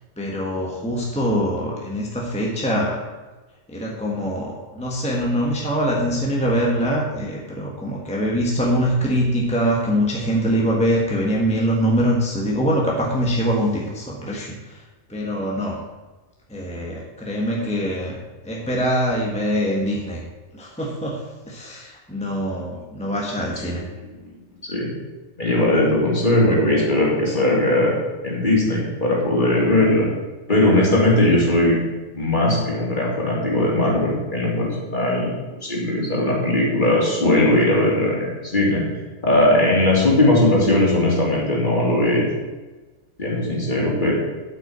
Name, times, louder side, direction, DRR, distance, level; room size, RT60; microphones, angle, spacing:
voice 1, 0.2-3.0 3.7-14.8 15.1-15.8 16.5-18.2 18.4-20.2 20.5-23.8, equal, 5° left, -2 dB, 1.3 m, -23 dB
voice 2, 25.4-27.9 28.2-30.1 30.5-31.8 32.1-35.3 35.6-38.8 39.2-42.2 43.2-44.1, left 1 dB, 40° left, -4 dB, 3.1 m, -19 dB
8.7 x 6.1 x 8.0 m, 1.2 s
omnidirectional pair, 1.3 m